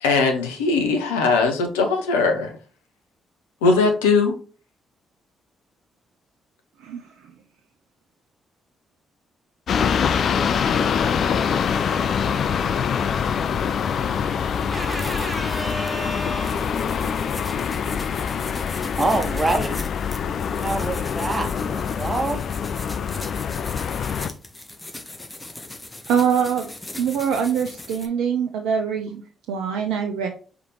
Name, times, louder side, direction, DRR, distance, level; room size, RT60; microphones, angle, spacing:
voice 1, 0.0-2.5 3.6-4.3, left 4 dB, 85° left, 5 dB, 0.8 m, -20 dB
sound 1, 9.7-24.3, left 7 dB, 60° left, 0.4 m, -24 dB
sound 2, 14.5-28.1, left 2 dB, 20° left, 1.2 m, -39 dB
voice 2, 14.7-16.7 19.0-19.9 20.5-22.4, right 2 dB, 20° right, 4 dB, 1.5 m, -27 dB
voice 3, 26.1-26.7 27.0-29.2 29.5-30.3, right 7 dB, 75° right, 4 dB, 0.5 m, -23 dB
4.9 x 3.6 x 3.0 m, 0.38 s
hypercardioid pair, 40°, 0 cm